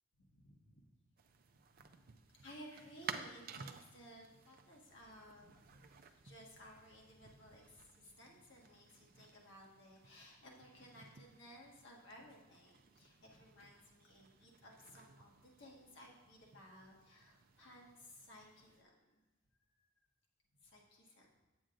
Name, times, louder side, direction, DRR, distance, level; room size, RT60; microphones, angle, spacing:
voice 1, 0.3-0.9 1.5-19.2 19.8-19.9 20.6-21.3, equal, 70° left, -2 dB, 1.5 m, -58 dB
sound 1, 1.2-18.8, right 6 dB, 50° right, 0.4 m, -55 dB
8.8 x 7.8 x 2.5 m, 1.1 s
head